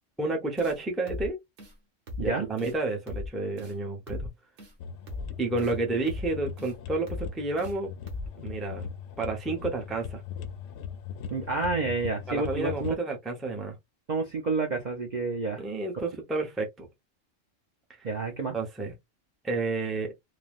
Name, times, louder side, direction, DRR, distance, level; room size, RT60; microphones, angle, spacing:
voice 1, 0.2-1.4 2.2-4.3 5.4-7.9 8.4-8.8 9.2-10.2 12.3-13.7 15.6-16.9 18.0-18.1 18.5-18.9 19.4-20.1, right 3 dB, ahead, 0.5 m, -30 dB
sound 1, 0.6-0.8 1.1-1.3 1.6-1.7 2.1-2.3 2.6-2.8 3.1-3.3 3.6-3.8 4.1-4.3 4.6-4.7 5.1-5.3 5.6-5.8 6.1-6.3 6.6-6.7 7.1-7.3 7.6-7.8 8.1-8.3, left 2 dB, 70° right, 1.2 m, -37 dB
sound 2, 4.8-12.9, left 7 dB, 70° left, 0.8 m, -40 dB
voice 2, 11.3-13.0 14.1-15.6 18.0-18.6, right 3 dB, 50° right, 0.6 m, -29 dB
3.3 x 2.2 x 2.4 m
omnidirectional pair, 1.3 m